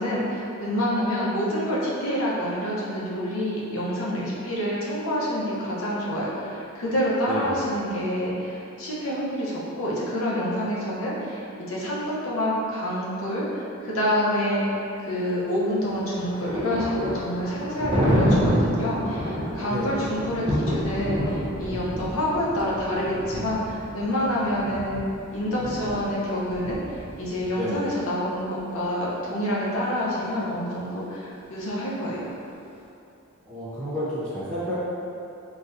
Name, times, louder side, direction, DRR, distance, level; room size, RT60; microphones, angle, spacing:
voice 1, 0.0-25.0 25.3-32.3, equal, 70° left, -6 dB, 0.7 m, -27 dB
voice 2, 7.2-7.6 19.7-20.0 27.5-27.7 33.5-34.7, equal, 5° left, -13 dB, 1.0 m, -30 dB
Thunder, 15.7-27.5, equal, 25° right, 0.5 m, -28 dB
4.0 x 2.3 x 2.6 m, 2.7 s
head